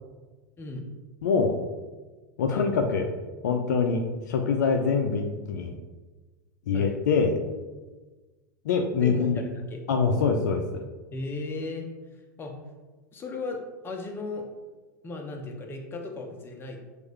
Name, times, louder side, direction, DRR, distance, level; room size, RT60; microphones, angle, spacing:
voice 1, 0.6-0.9 2.5-2.7 6.7-6.9 9.0-9.8 11.1-11.9 12.4-12.5 13.1-14.4 15.0-16.8, left 2 dB, 20° left, 2 dB, 0.8 m, -36 dB
voice 2, 1.2-1.6 2.4-3.1 3.4-5.8 6.7-7.4 8.6-9.4 9.9-10.9, left 5 dB, 65° left, 4 dB, 0.5 m, -24 dB
6.3 x 2.6 x 3.1 m, 1.2 s
figure-of-eight pair, 90°, 10 cm